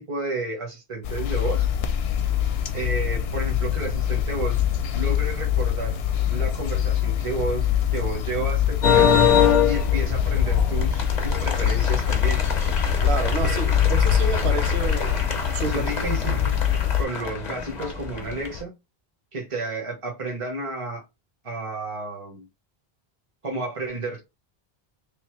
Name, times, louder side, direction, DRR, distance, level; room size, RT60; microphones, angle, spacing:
voice 1, 0.0-1.6 2.7-4.6 4.9-6.0 6.3-9.1 9.7-12.4 13.4-13.8 14.3-14.5 15.6-16.6 17.0-18.7 19.3-21.0 21.4-22.5 23.4-24.2, right 2 dB, 30° right, 1.1 m, -31 dB
sound 1, 1.0-17.0, left 10 dB, 80° left, 0.8 m, -24 dB
sound 2, 8.8-18.6, left 6 dB, 45° left, 0.9 m, -24 dB
voice 2, 13.0-15.2 15.5-16.4, right 4 dB, 90° right, 1.0 m, -30 dB
3.3 x 2.7 x 3.1 m
omnidirectional pair, 1.0 m